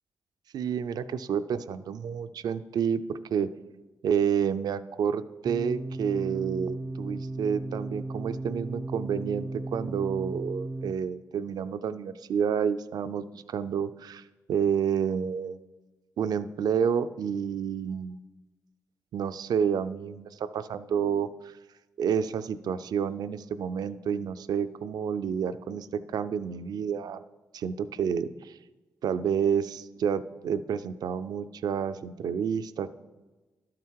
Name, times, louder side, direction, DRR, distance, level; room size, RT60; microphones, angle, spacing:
voice 1, 0.5-3.0 3.3-3.5 4.0-14.2 14.5-15.6 16.2-18.2 19.1-21.6 22.0-25.9 26.1-27.2 27.5-28.6 29.0-32.9, right 7 dB, 75° right, 13 dB, 0.4 m, -29 dB
sound 1, 5.5-10.9, right 2 dB, 10° right, 0.3 m, -35 dB
11.5 x 5.8 x 4.6 m, 1.2 s
cardioid pair, 60°, 7 cm